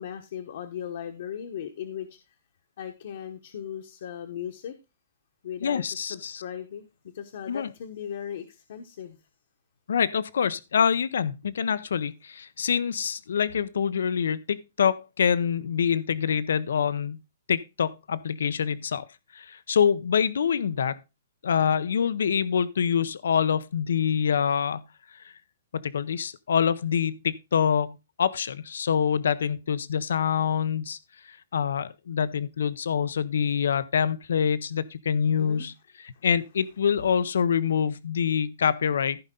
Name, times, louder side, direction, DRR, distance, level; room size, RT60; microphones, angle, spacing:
voice 1, 0.0-2.2 2.8-4.8 5.4-6.9 7.1-9.2 35.4-35.7 36.1-36.3, left 9 dB, 50° left, 1.1 m, -37 dB
voice 2, 5.6-6.4 7.5-7.7 9.9-17.2 17.5-19.0 19.3-21.0 21.4-24.8 25.1-25.3 25.7-31.0 31.2-35.7 36.0-39.2, left 7 dB, 80° left, 0.6 m, -25 dB
14.5 x 5.5 x 3.8 m
hypercardioid pair, 180°, 0 cm